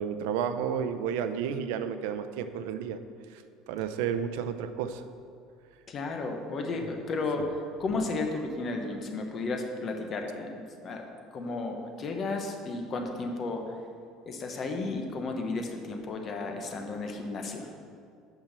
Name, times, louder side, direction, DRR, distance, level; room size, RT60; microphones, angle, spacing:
voice 1, 0.0-3.0 3.3-5.0, right 8 dB, 80° right, 10 dB, 0.6 m, -32 dB
voice 2, 5.9-11.1 11.3-13.7 14.2-17.7, left 3 dB, 30° left, 3 dB, 1.0 m, -33 dB
8.9 x 6.1 x 6.8 m, 2.4 s
cardioid pair, 170°, 0 cm